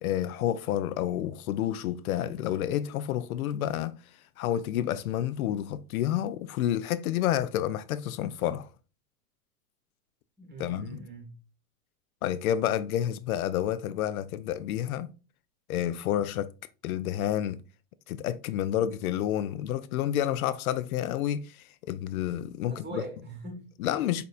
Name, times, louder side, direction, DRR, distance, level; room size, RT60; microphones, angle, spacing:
voice 1, 0.0-4.0 4.4-8.7 10.6-11.0 12.2-15.1 15.7-16.5 16.8-17.6 18.1-23.0 23.8-24.3, left 11 dB, 75° left, 0.5 m, -29 dB
voice 2, 10.4-11.4 22.7-23.7, right 2 dB, 25° right, 1.7 m, -41 dB
6.5 x 2.7 x 2.3 m
hypercardioid pair, 110°, 43 cm